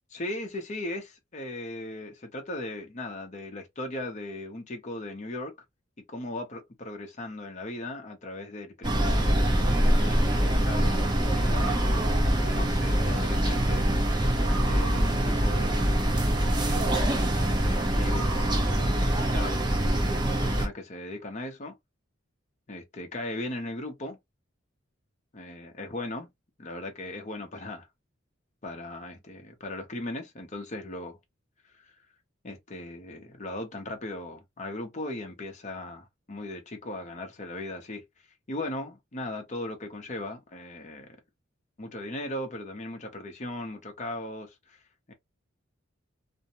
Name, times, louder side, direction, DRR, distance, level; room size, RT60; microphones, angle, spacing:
voice 1, 0.1-5.5 6.1-11.0 11.3-12.0 12.4-13.9 14.4-16.2 16.5-17.1 17.4-19.7 20.3-21.7 22.7-24.2 25.3-26.3 26.6-27.9 28.6-31.2 31.6-32.0 32.4-38.0 38.5-41.1 41.8-45.1, left 1 dB, 40° left, 0.7 m, -38 dB
sound 1, 8.8-20.7, right 1 dB, 25° right, 0.7 m, -24 dB
2.6 x 2.1 x 2.8 m
head